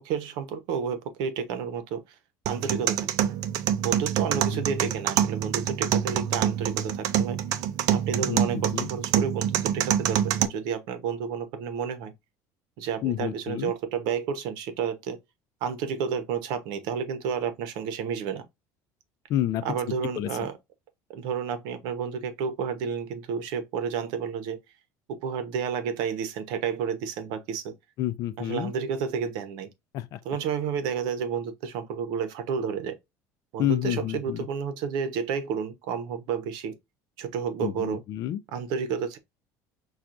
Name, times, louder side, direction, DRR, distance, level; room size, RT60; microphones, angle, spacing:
voice 1, 0.0-2.0 2.5-3.3 3.8-7.4 7.9-12.1 12.8-15.2 15.6-18.5 19.6-20.6 21.1-24.6 25.1-27.7 28.4-29.7 30.2-33.0 33.5-36.8 37.2-38.0 38.5-39.2, right 7 dB, 70° right, 0.8 m, -31 dB
sound 1, 2.5-10.4, right 10 dB, 55° right, 0.4 m, -26 dB
voice 2, 13.0-13.7 19.3-19.6 20.2-20.3 28.0-28.7 29.9-30.2 33.6-34.4 37.6-38.4, left 12 dB, 50° left, 0.5 m, -29 dB
5.9 x 2.4 x 2.5 m
cardioid pair, 160°, 8 cm